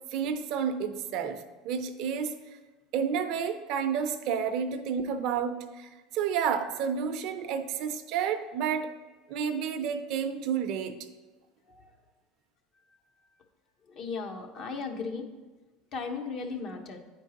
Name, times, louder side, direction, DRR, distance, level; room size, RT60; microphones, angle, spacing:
voice 1, 0.1-2.3 2.9-8.9 9.3-10.9, right 7 dB, 65° right, 9 dB, 0.5 m, -30 dB
voice 2, 13.9-15.2 15.9-17.0, left 4 dB, 50° left, 3 dB, 0.9 m, -36 dB
9.6 x 4.5 x 2.9 m, 1.2 s
hypercardioid pair, 90°, 0 cm